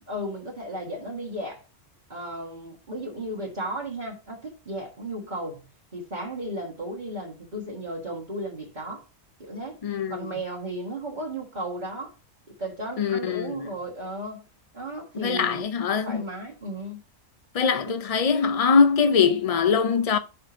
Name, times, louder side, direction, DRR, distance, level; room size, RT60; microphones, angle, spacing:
voice 1, 0.1-1.6 2.1-5.7 5.9-9.0 9.4-9.8 10.1-12.1 12.5-14.4 14.7-15.7 16.0-17.0 17.8-17.9, right 1 dB, 35° right, 1.7 m, -34 dB
voice 2, 9.8-10.2 13.0-13.7 15.1-16.2 17.5-20.2, left 5 dB, 70° left, 0.3 m, -22 dB
6.0 x 5.0 x 4.9 m
omnidirectional pair, 1.3 m